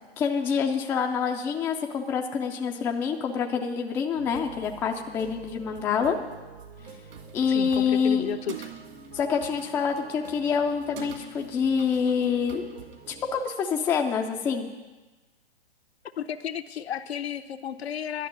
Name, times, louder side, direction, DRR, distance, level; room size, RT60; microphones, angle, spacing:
voice 1, 0.2-6.2 7.3-8.3 9.1-12.6 13.1-14.7, left 6 dB, 5° left, 2 dB, 0.4 m, -26 dB
sound 1, 4.1-13.3, right 5 dB, 80° right, 2.1 m, -48 dB
sound 2, 6.8-13.0, right 8 dB, 60° right, 2.2 m, -47 dB
voice 2, 7.5-8.7 16.2-18.3, left 8 dB, 75° left, 9 dB, 0.8 m, -33 dB
11.0 x 6.5 x 9.1 m, 1.2 s
hypercardioid pair, 130°, 32 cm